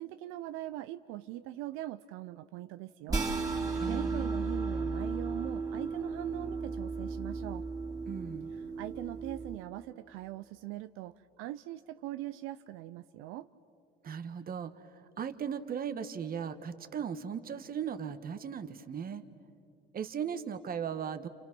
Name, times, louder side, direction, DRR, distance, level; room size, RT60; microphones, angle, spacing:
voice 1, 0.0-7.6 8.5-13.5, right 15 dB, 85° right, 11 dB, 0.6 m, -42 dB
sound 1, 3.1-9.6, right 4 dB, 15° right, 3.0 m, -35 dB
voice 2, 3.7-4.3 8.1-8.5 14.0-19.2 19.9-21.3, right 7 dB, 45° right, 10 dB, 1.4 m, -37 dB
30.0 x 28.5 x 6.1 m, 2.6 s
cardioid pair, 95°, 21 cm